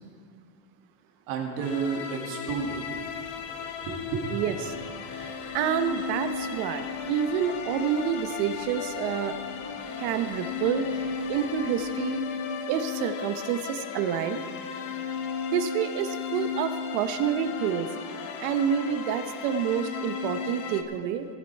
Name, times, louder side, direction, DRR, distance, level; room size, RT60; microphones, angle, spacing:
voice 1, 1.3-3.0 3.8-4.3, right 5 dB, 50° right, 0 dB, 2.0 m, -31 dB
sound 1, 1.6-20.8, left 6 dB, 45° left, 0.9 m, -35 dB
sound 2, 3.2-12.0, equal, 5° left, 3.2 m, -51 dB
voice 2, 4.3-4.7 5.1-5.3 5.5-9.3 10.0-12.2 12.7-14.4 15.5-17.9 18.4-21.3, right 8 dB, 80° right, 8 dB, 1.1 m, -28 dB
19.0 x 7.6 x 4.6 m, 2.2 s
cardioid pair, 180°, 43 cm